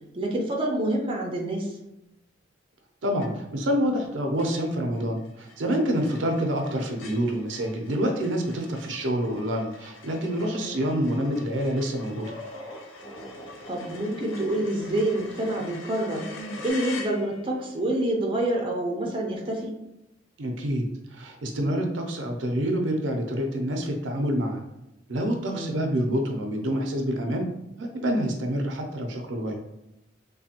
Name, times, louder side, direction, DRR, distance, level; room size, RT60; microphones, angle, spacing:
voice 1, 0.1-1.7 10.5-10.8 13.7-16.3 16.6-19.7 25.5-25.8, right 1 dB, 30° right, -1 dB, 0.5 m, -27 dB
voice 2, 3.0-12.3 20.4-20.9 21.1-24.6 25.1-27.5 27.8-29.5, equal, 80° right, 3 dB, 0.5 m, -27 dB
sound 1, 3.2-3.7 4.0-4.1 4.4-17.7, left 3 dB, 85° left, 0.5 m, -45 dB
sound 2, 7.0-8.4 8.8-8.9 10.0-16.7, equal, 30° left, 0.7 m, -45 dB
3.2 x 2.2 x 2.8 m, 0.89 s
head